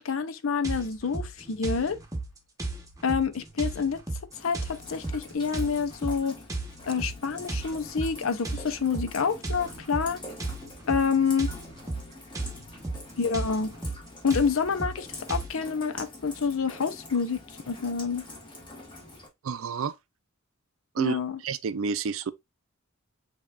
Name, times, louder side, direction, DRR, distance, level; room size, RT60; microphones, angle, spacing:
voice 1, 0.0-2.0 3.0-4.0 4.4-6.4 6.8-10.2 10.9-11.5 13.2-13.7 14.2-17.4 17.7-18.2 21.0-21.4, left 5 dB, 70° left, 0.6 m, -28 dB
sound 1, 0.6-15.5, right 2 dB, 15° right, 1.0 m, -35 dB
Rain, 4.3-19.3, left 2 dB, 25° left, 1.7 m, -45 dB
voice 2, 19.4-20.0 20.9-22.3, right 6 dB, 70° right, 0.4 m, -30 dB
7.2 x 2.9 x 2.4 m
head